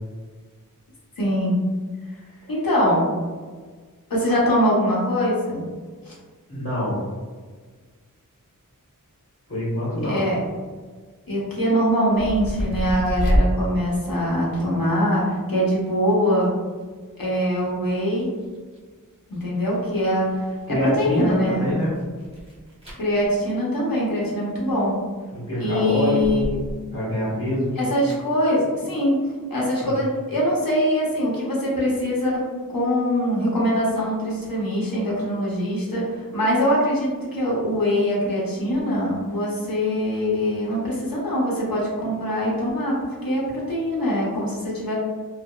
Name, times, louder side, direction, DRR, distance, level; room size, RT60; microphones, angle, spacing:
voice 1, 1.2-1.6 2.5-3.1 4.1-5.6 6.0-6.2 10.0-10.4 11.3-16.5 17.2-18.3 19.3-21.6 23.0-25.0 25.6-26.6 27.7-29.2 29.5-32.4 32.7-44.9, equal, 85° left, -5 dB, 0.8 m, -23 dB
voice 2, 6.5-7.0 9.5-10.2 20.7-21.9 25.3-26.5 26.9-27.8 29.8-29.9, equal, 40° left, -8 dB, 1.2 m, -24 dB
sound 1, 10.5-10.8 11.7-13.5 13.8-14.6 16.1-16.2 16.4-16.8 17.2-18.8 19.3-23.4 24.7-25.2 25.8-26.8 27.1-28.2, equal, 15° right, 0.8 m, -29 dB
2.8 x 2.0 x 2.2 m, 1.5 s
wide cardioid pair, 45°, 34 cm